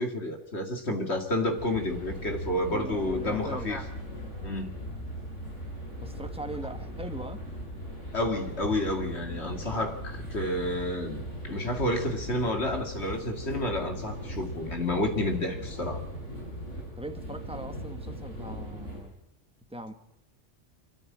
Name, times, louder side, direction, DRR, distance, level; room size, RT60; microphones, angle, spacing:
voice 1, 0.0-3.8 4.4-4.8 8.1-16.0, left 1 dB, 65° left, 4 dB, 2.7 m, -30 dB
sound 1, 1.5-19.0, equal, 80° left, 8.6 m, -39 dB
voice 2, 2.7-3.7 6.0-7.4 17.0-19.2 19.7-19.9, right 1 dB, 5° right, 7 dB, 1.5 m, -40 dB
25.0 x 14.0 x 8.7 m, 0.90 s
omnidirectional pair, 1.2 m